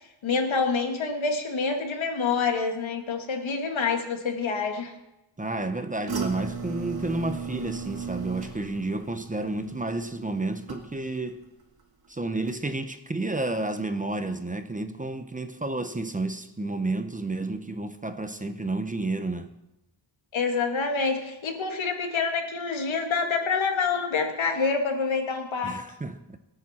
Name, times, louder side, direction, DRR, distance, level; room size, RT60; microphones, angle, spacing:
voice 1, 0.2-4.9 20.3-25.8, left 4 dB, 80° left, 2.1 m, -27 dB
voice 2, 5.4-11.4 12.1-19.5 25.6-26.4, right 2 dB, 15° right, 0.8 m, -31 dB
sound 1, 6.1-11.3 11.6-12.1 12.5-12.6, right 5 dB, 50° right, 2.1 m, -36 dB
24.5 x 8.8 x 4.3 m
wide cardioid pair, 135°, 46 cm